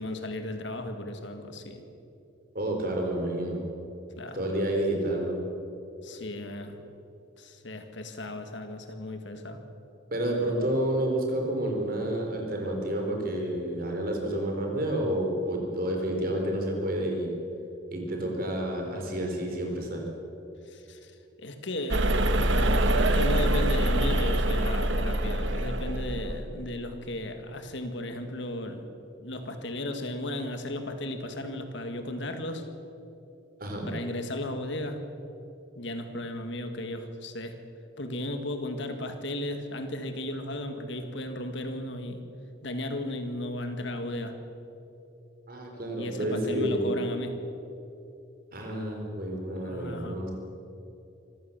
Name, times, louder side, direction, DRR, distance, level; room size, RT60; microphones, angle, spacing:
voice 1, 0.0-1.9 4.2-4.6 6.0-6.8 7.4-9.6 20.7-28.9 29.2-32.7 33.8-35.1 35.8-37.6 38.0-42.2 42.6-44.4 46.0-47.4 49.6-50.2, left 1 dB, 60° left, 7 dB, 1.9 m, -35 dB
voice 2, 2.5-3.6 4.3-5.4 10.1-17.3 17.9-20.0 33.6-33.9 45.5-46.9 48.5-50.3, right 1 dB, 45° right, 1 dB, 4.2 m, -29 dB
sound 1, 21.9-26.4, right 1 dB, 65° right, 1.4 m, -25 dB
25.0 x 15.0 x 7.4 m, 2.9 s
head